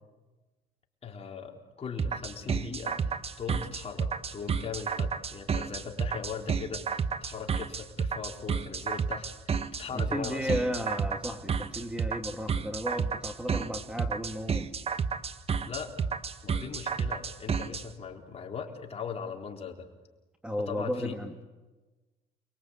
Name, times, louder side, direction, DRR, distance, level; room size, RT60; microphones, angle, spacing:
voice 1, 1.0-10.6 15.7-15.9 16.4-19.9 20.6-21.2, left 6 dB, 35° left, 1 dB, 3.9 m, -39 dB
sound 1, 2.0-17.8, right 6 dB, 35° right, 1.3 m, -31 dB
voice 2, 9.9-14.7 20.4-21.4, equal, 5° right, 5 dB, 1.9 m, -34 dB
29.0 x 22.0 x 8.4 m, 1.2 s
cardioid pair, 110°, 17 cm